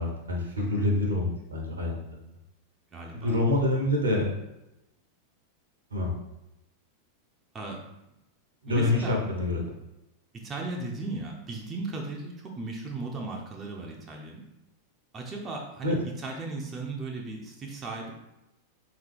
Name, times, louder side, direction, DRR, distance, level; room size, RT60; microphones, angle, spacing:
voice 1, 0.0-2.3 3.1-4.4 5.9-6.1 8.6-9.6 15.8-15.9, left 2 dB, 75° right, 0 dB, 0.9 m, -26 dB
voice 2, 2.9-3.4 7.5-7.8 8.7-9.1 10.3-14.5 15.1-18.1, right 3 dB, 25° right, 0 dB, 0.6 m, -36 dB
3.5 x 2.9 x 3.3 m, 0.92 s
figure-of-eight pair, 90°, 0 cm